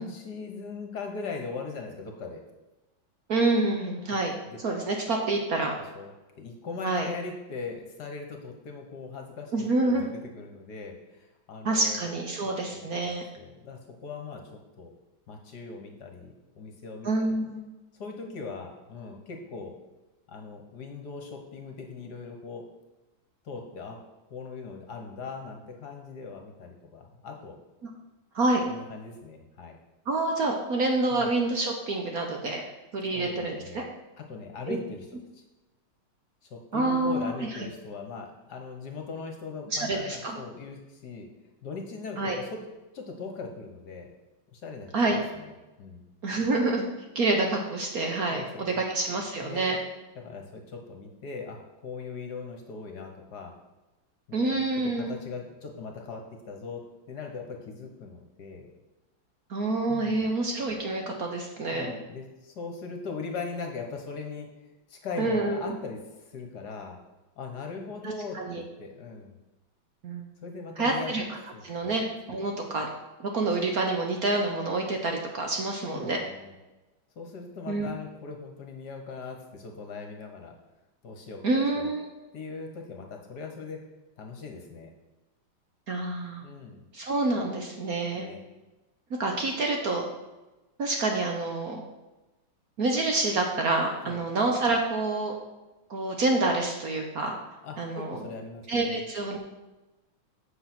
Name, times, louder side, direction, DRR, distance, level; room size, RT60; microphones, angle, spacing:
voice 1, 0.0-2.4 4.5-4.6 5.9-12.2 12.4-14.9 15.3-17.4 18.0-19.7 20.3-22.6 23.4-24.0 24.3-27.6 28.7-29.8 31.1-31.3 33.1-33.9 34.2-35.1 35.3-35.4 36.4-41.3 41.6-42.6 42.9-44.1 44.5-45.5 45.8-46.0 48.3-48.8 49.4-49.7 50.2-53.5 54.3-56.8 57.1-58.7 59.8-60.2 61.7-64.5 64.9-67.0 67.4-69.3 70.4-71.1 71.5-71.9 72.3-72.4 75.9-76.5 77.1-80.5 81.0-81.9 82.3-83.8 84.2-84.9 86.4-86.8 88.1-88.4 94.0-94.2 97.6-99.0, left 4 dB, 55° left, 3 dB, 1.5 m, -40 dB
voice 2, 3.3-4.3 4.6-5.7 6.8-7.1 9.5-10.1 11.6-13.2 17.0-17.6 27.8-27.9 28.3-28.6 30.1-32.6 32.9-33.8 34.7-34.8 36.7-37.5 39.7-40.3 42.2-42.4 44.9-45.2 46.2-46.8 47.1-49.8 54.3-55.1 59.5-61.9 65.2-65.8 68.3-68.6 70.0-70.3 70.8-71.2 71.6-72.9 73.2-76.2 77.7-77.9 81.4-82.1 85.9-86.4 86.9-88.3 89.2-90.0 90.8-91.8 92.8-95.3 95.9-97.4 97.8-98.2 98.7-99.4, right 2 dB, 55° right, 2 dB, 1.3 m, -27 dB
8.0 x 6.1 x 6.0 m, 1.1 s
omnidirectional pair, 2.3 m